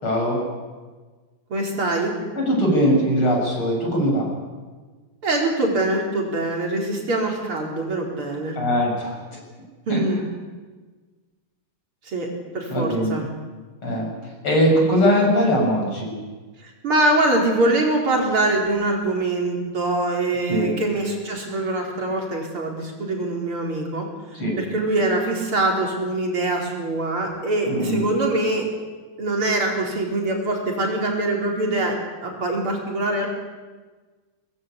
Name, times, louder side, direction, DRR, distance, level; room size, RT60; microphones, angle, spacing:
voice 1, 0.0-0.4 2.4-4.3 8.6-9.2 9.9-10.0 12.7-13.2 13.8-14.1 14.4-16.1 20.5-20.7 24.3-24.6 27.7-28.1, equal, 80° left, 0 dB, 8.0 m, -20 dB
voice 2, 1.5-2.1 5.2-8.6 9.9-10.2 12.1-12.3 12.5-13.2 16.6-24.1 24.6-28.6 29.2-32.0 32.2-33.3, right 2 dB, 80° right, 0 dB, 5.4 m, -23 dB
23.5 x 20.5 x 8.5 m, 1.4 s
omnidirectional pair, 2.3 m